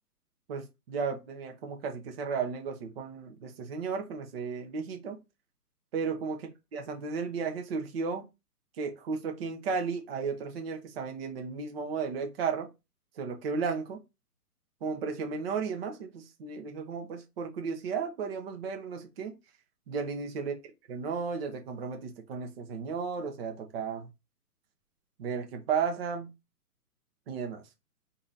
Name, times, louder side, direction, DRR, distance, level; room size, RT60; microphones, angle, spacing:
voice 1, 0.5-5.2 5.9-6.4 6.7-8.2 8.8-12.7 13.2-14.0 14.8-19.3 19.9-20.5 20.9-24.1 25.2-26.3 27.3-27.6, right 5 dB, 40° right, 0.8 m, -34 dB
3.9 x 2.7 x 3.8 m
figure-of-eight pair, 130°, 48 cm